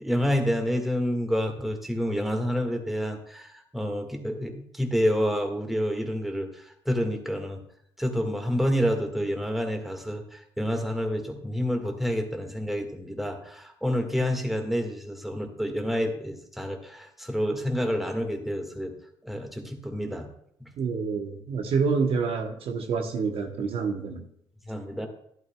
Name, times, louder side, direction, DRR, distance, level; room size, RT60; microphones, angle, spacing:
voice 1, 0.0-7.6 8.0-18.9 19.2-20.3 20.6-20.7 24.7-25.1, equal, ahead, 3 dB, 1.7 m, -28 dB
voice 2, 20.8-24.3, right 5 dB, 70° right, 4 dB, 1.1 m, -27 dB
12.0 x 11.0 x 2.3 m, 0.71 s
cardioid pair, 80°, 10 cm